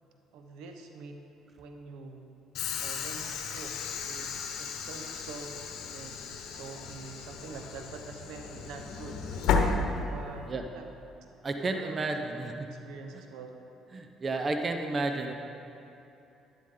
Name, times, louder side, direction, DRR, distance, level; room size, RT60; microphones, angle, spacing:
voice 1, 0.3-1.2 1.5-2.3 2.8-3.8 4.0-5.6 5.9-9.2 10.0-10.5 10.7-10.9 11.6-13.5, right 4 dB, 80° right, 4 dB, 1.0 m, -45 dB
Train / Sliding door, 2.5-10.5, left 5 dB, 75° left, 1.1 m, -33 dB
voice 2, 11.4-12.5 13.1-13.2 13.9-15.3, right 2 dB, 35° right, 5 dB, 0.8 m, -31 dB
11.0 x 11.0 x 3.8 m, 2.9 s
supercardioid pair, 80°, 0 cm